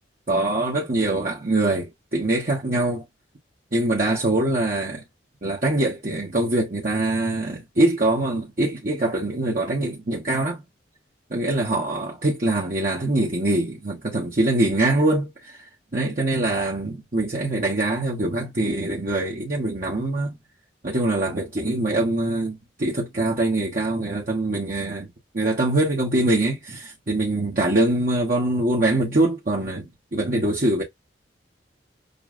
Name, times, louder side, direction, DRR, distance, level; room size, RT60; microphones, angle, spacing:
voice 1, 0.3-3.0 3.7-5.0 5.4-10.6 11.3-15.6 15.9-20.3 20.8-25.1 25.3-30.8, right 2 dB, 50° right, 1.1 m, -23 dB
6.7 x 2.3 x 2.5 m
head